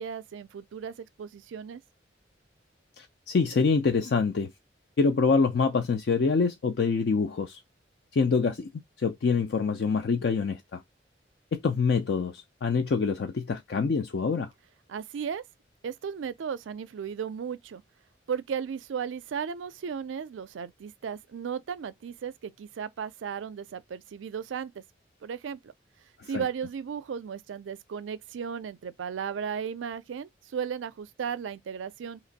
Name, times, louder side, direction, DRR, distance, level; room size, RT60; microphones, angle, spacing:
voice 1, 0.0-1.8 14.9-15.4 15.8-17.8 18.3-24.8 25.2-25.7 26.3-32.2, right 7 dB, 85° right, 0.4 m, -35 dB
voice 2, 3.0-4.5 5.0-7.6 8.1-8.7 9.0-10.8 11.5-14.5 26.2-26.4, left 4 dB, 60° left, 0.4 m, -25 dB
2.9 x 2.5 x 3.9 m
head